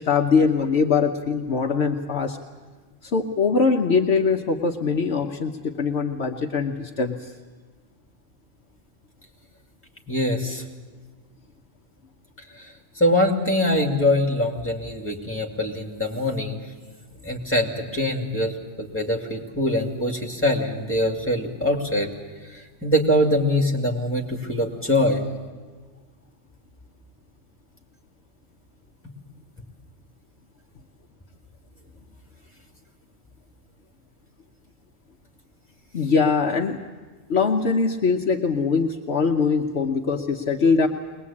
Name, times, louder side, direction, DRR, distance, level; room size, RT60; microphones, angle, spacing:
voice 1, 0.0-2.4 3.0-7.3 35.9-36.8 37.3-40.9, left 5 dB, 60° left, 3 dB, 1.1 m, -22 dB
voice 2, 10.1-10.6 12.5-16.6 17.2-22.1 22.5-25.2, left 1 dB, 10° left, 2 dB, 2.4 m, -23 dB
22.5 x 20.0 x 8.5 m, 1.4 s
omnidirectional pair, 1.3 m